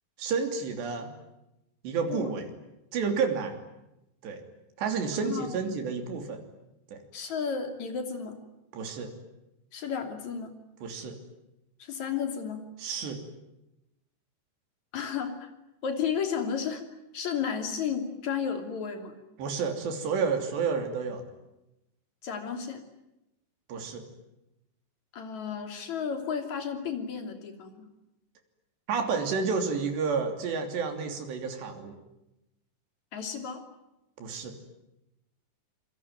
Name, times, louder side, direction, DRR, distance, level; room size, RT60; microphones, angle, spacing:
voice 1, 0.2-1.1 1.8-2.4 2.9-3.5 4.2-4.4 4.8-6.4 6.9-7.0 8.7-9.1 10.8-11.2 12.8-13.2 19.4-21.2 23.7-24.0 28.9-31.9 34.2-34.6, right 5 dB, 90° right, 5 dB, 5.3 m, -30 dB
voice 2, 5.2-5.6 7.1-8.4 9.7-10.5 11.8-12.7 14.9-15.5 15.8-16.9 17.1-19.2 22.2-22.8 25.1-27.9 33.1-33.6, left 7 dB, 45° left, 6 dB, 4.0 m, -33 dB
27.0 x 23.0 x 9.3 m, 0.91 s
omnidirectional pair, 4.8 m